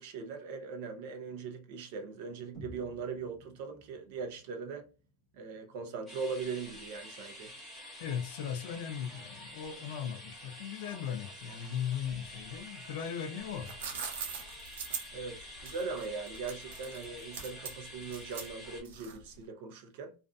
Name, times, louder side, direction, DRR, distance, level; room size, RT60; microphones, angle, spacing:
voice 1, 0.0-4.8 5.3-7.5 15.1-20.1, right 5 dB, 50° right, 0.6 m, -40 dB
sound 1, 2.5-6.5, equal, 20° right, 1.1 m, -54 dB
sound 2, 6.1-18.8, left 1 dB, ahead, 0.9 m, -48 dB
voice 2, 8.0-13.7, left 8 dB, 55° left, 0.5 m, -38 dB
sound 3, 13.4-19.4, right 6 dB, 90° right, 0.7 m, -41 dB
2.5 x 2.4 x 2.3 m
supercardioid pair, 180°, 0 cm